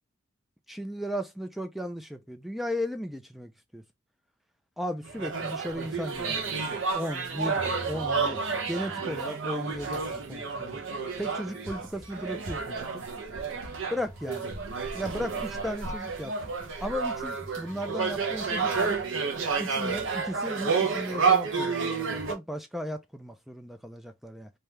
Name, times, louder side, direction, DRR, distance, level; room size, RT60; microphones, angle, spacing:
voice 1, 0.7-3.8 4.8-6.6 6.9-10.8 11.2-12.9 13.9-14.5 14.9-16.5 16.8-19.0 19.6-24.5, equal, ahead, 0.5 m, -36 dB
sound 1, 5.0-22.3, right 5 dB, 60° right, 0.9 m, -30 dB
3.4 x 2.8 x 3.2 m
head